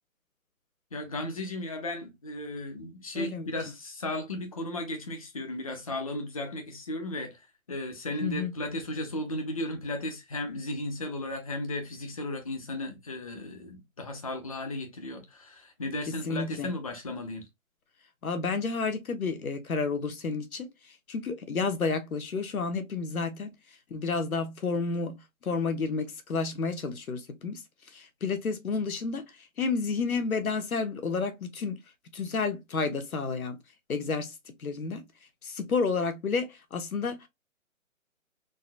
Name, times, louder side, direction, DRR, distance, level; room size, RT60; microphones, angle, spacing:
voice 1, 0.9-7.4 7.7-17.4, left 1 dB, 25° left, 0.6 m, -35 dB
voice 2, 3.1-3.5 8.2-8.5 16.1-16.7 18.2-20.7 21.1-23.5 23.9-25.1 25.4-27.6 27.9-29.2 29.6-31.8 32.1-33.6 33.9-34.3 34.6-35.0 35.4-37.3, left 4 dB, 85° left, 1.2 m, -30 dB
4.0 x 2.6 x 2.4 m
hypercardioid pair, 165°, 42 cm